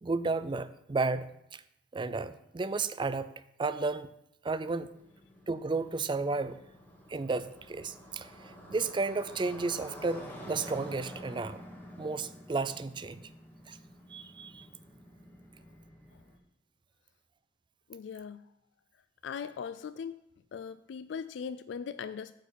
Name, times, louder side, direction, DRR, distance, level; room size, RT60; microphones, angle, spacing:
voice 1, 0.0-1.6 1.9-3.3 3.6-4.1 4.4-4.9 5.5-6.6 7.1-11.6 12.0-13.3 13.7-13.8 14.1-14.7, right 3 dB, 25° right, 14 dB, 0.4 m, -33 dB
Motorcycle, 4.9-16.4, equal, 10° left, 1.6 m, -49 dB
voice 2, 17.9-18.4 19.2-20.2 20.5-22.3, left 6 dB, 85° left, 12 dB, 0.3 m, -39 dB
8.9 x 4.7 x 6.9 m, 0.79 s
head